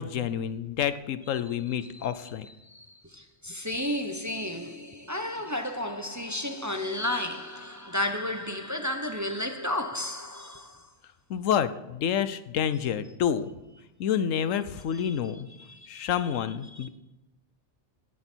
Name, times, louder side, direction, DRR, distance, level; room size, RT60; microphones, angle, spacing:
voice 1, 0.0-2.5 11.3-13.5 14.0-15.5 15.9-16.9, left 9 dB, 80° left, 1.1 m, -28 dB
voice 2, 1.8-10.9 14.9-15.2 15.6-16.1 16.7-16.9, left 1 dB, 15° right, 0.8 m, -33 dB
18.0 x 11.0 x 4.5 m
omnidirectional pair, 1.3 m